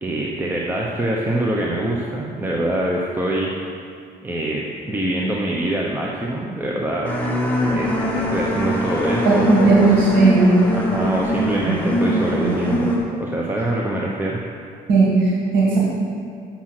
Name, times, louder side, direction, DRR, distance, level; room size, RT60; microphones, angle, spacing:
voice 1, 0.0-3.5 4.2-7.1 7.7-9.9 10.7-12.9 13.2-14.4, right 1 dB, 10° right, -3 dB, 0.8 m, -24 dB
sound 1, 7.0-13.0, equal, 10° left, 1.5 m, -22 dB
voice 2, 9.3-10.5 14.9-15.8, right 3 dB, 90° right, -6 dB, 1.8 m, -15 dB
7.3 x 6.2 x 5.9 m, 2.3 s
cardioid pair, 110°, 17 cm